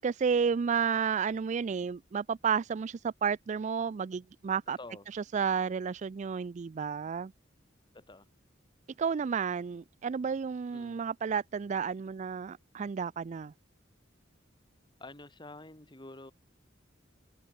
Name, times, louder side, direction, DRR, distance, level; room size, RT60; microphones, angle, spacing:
voice 1, 0.0-4.8 5.1-7.3 9.0-13.5, right 6 dB, 40° right, 0.3 m, -31 dB
voice 2, 4.7-5.0 7.9-8.3 10.7-11.0 15.0-16.3, left 2 dB, 25° left, 2.4 m, -48 dB
head